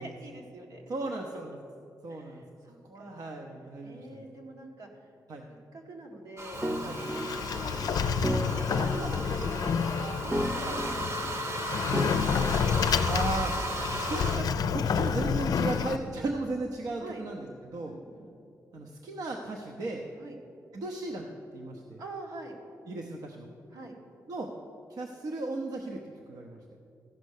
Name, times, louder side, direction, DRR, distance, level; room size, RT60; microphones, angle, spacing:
voice 1, 0.0-0.9 2.1-3.3 3.8-5.1 5.5-13.2 17.0-17.2 17.9-18.3 20.2-20.4 22.0-22.5 23.7-23.9, right 2 dB, 85° right, -1 dB, 1.8 m, -45 dB
voice 2, 0.9-1.6 2.0-2.4 2.8-4.2 5.3-5.4 6.8-7.0 8.7-8.9 10.6-10.8 13.0-13.5 14.0-17.9 18.7-20.0 20.7-21.3 21.5-22.0 22.9-23.5 24.3-24.5 24.9-26.0 26.3-26.6, right 2 dB, 65° right, 1 dB, 0.8 m, -36 dB
sound 1, 6.4-14.4, right 1 dB, 45° right, 1.0 m, -36 dB
Sliding door, 6.5-16.0, left 6 dB, 75° left, 0.4 m, -29 dB
sound 2, 6.6-13.3, right 1 dB, 15° right, 0.7 m, -35 dB
14.5 x 5.3 x 6.5 m, 2.6 s
cardioid pair, 85°, 7 cm